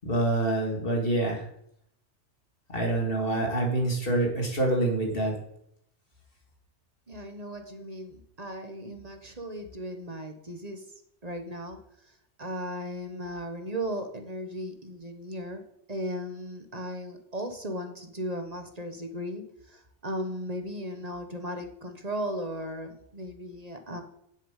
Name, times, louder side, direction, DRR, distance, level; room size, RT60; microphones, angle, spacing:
voice 1, 0.0-1.4 2.7-5.3, right 2 dB, 50° left, 0 dB, 2.8 m, -26 dB
voice 2, 7.1-10.8 11.2-11.8 12.4-15.6 15.9-24.0, equal, 35° right, 6 dB, 1.5 m, -36 dB
8.6 x 7.3 x 8.4 m, 0.74 s
omnidirectional pair, 1.2 m